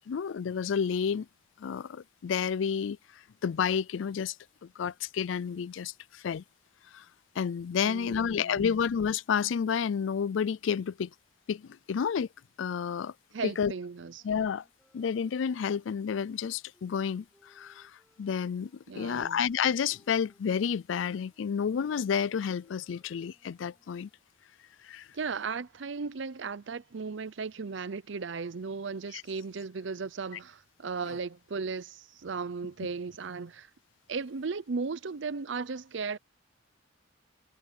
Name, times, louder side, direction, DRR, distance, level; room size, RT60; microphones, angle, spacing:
voice 1, 0.1-1.3 1.6-3.0 3.4-4.3 4.6-6.4 6.9-7.0 7.4-11.1 11.5-12.3 12.6-13.1 13.4-13.7 14.2-14.6 14.9-17.9 18.2-24.1 24.8-25.1, left 7 dB, 70° left, 0.4 m, -30 dB
voice 2, 7.8-8.8 13.3-14.2 18.9-19.4 25.1-33.7 34.1-36.2, right 4 dB, 65° right, 0.6 m, -36 dB
sound 1, 14.1-20.9 21.3-24.3, equal, ahead, 3.0 m, -69 dB
head